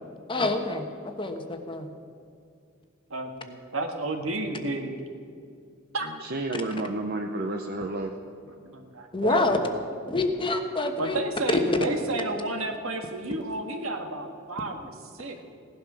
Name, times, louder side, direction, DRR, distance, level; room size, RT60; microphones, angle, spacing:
voice 1, 0.3-1.9 9.1-9.6 10.1-11.2 11.7-11.8, left 2 dB, 25° left, 5 dB, 1.1 m, -27 dB
voice 2, 3.1-4.9 5.9-6.1 8.6-9.8 11.0-15.4, right 2 dB, 70° right, 4 dB, 1.8 m, -32 dB
voice 3, 6.0-8.2, right 2 dB, 45° right, 4 dB, 0.8 m, -31 dB
17.0 x 12.0 x 6.3 m, 2.3 s
head